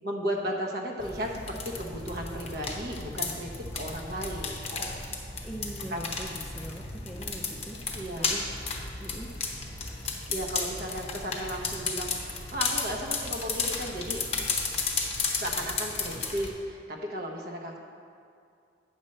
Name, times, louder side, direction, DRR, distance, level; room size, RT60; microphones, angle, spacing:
voice 1, 0.0-4.6 5.9-6.1 7.9-8.3 10.0-12.1 12.5-14.2 15.3-17.8, equal, 55° right, 0 dB, 1.1 m, -35 dB
sound 1, 1.0-16.5, left 4 dB, 35° left, 0.8 m, -33 dB
voice 2, 5.4-8.4 9.0-9.3, right 1 dB, ahead, -1 dB, 0.4 m, -42 dB
9.0 x 4.4 x 6.5 m, 2.4 s
head